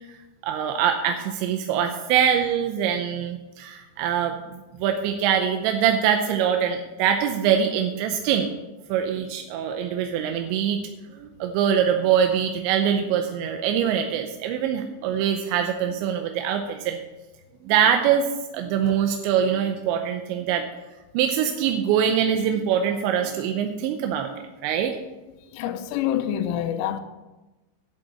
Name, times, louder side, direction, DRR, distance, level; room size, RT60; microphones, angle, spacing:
voice 1, 0.4-8.5 8.9-10.8 11.2-17.0 17.6-18.3 18.5-20.7 21.1-25.0, right 8 dB, 80° right, 2.7 m, -23 dB
voice 2, 25.5-27.0, left 10 dB, 90° left, 3.3 m, -26 dB
11.0 x 7.6 x 7.4 m
omnidirectional pair, 5.8 m